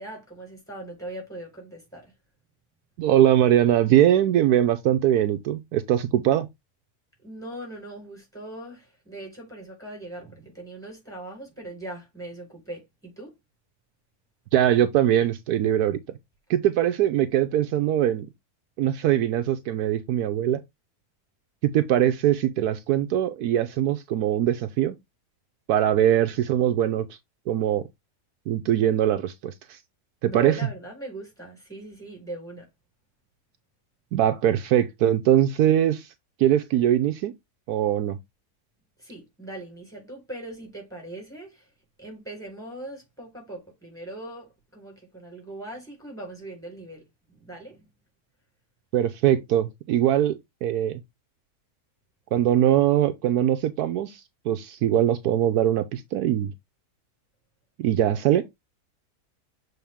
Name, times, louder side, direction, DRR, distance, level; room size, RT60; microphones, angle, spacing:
voice 1, 0.0-2.1 7.2-13.3 30.2-32.7 39.0-41.7 42.0-47.0 47.3-47.9, right 1 dB, ahead, 4.2 m, -40 dB
voice 2, 3.0-6.5 14.5-16.0 16.5-18.3 18.8-20.6 21.6-24.9 25.7-27.1 27.5-27.9 28.5-29.8 30.2-30.6 34.1-36.1 36.4-37.3 37.7-38.2 48.9-51.0 52.3-54.2 54.5-56.5 57.8-58.4, right 11 dB, 75° right, 1.1 m, -22 dB
7.2 x 3.8 x 3.5 m
omnidirectional pair, 1.7 m